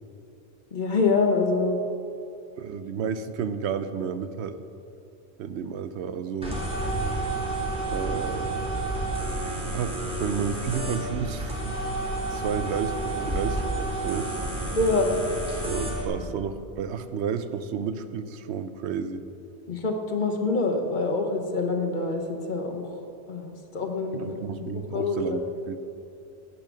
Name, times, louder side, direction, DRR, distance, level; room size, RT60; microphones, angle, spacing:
voice 1, 0.7-1.8 14.7-15.1 16.2-16.3 19.7-23.0 23.3-24.7 24.9-25.4, left 3 dB, 45° left, 3 dB, 1.1 m, -26 dB
voice 2, 2.6-4.6 5.4-6.6 7.9-8.5 9.3-11.8 12.3-14.3 15.7-19.2 24.1-25.8, right 6 dB, 80° right, 11 dB, 0.9 m, -32 dB
sound 1, 6.4-16.1, right 2 dB, 5° right, 1.8 m, -30 dB
10.5 x 8.4 x 6.2 m, 2.7 s
omnidirectional pair, 1.1 m